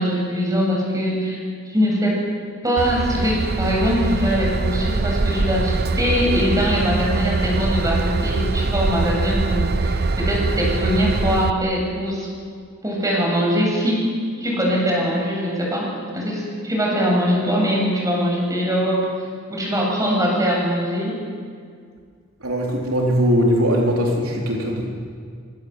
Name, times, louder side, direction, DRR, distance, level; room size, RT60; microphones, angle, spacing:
voice 1, 0.0-1.4 1.6-2.2 2.6-12.3 12.8-14.1 14.4-19.1 19.5-21.2, equal, 15° right, -2 dB, 8.0 m, -22 dB
Train / Engine, 2.8-11.5, right 3 dB, 50° right, 0.7 m, -23 dB
voice 2, 22.4-24.9, equal, 75° right, -1 dB, 4.0 m, -20 dB
26.5 x 26.0 x 8.2 m, 2.1 s
head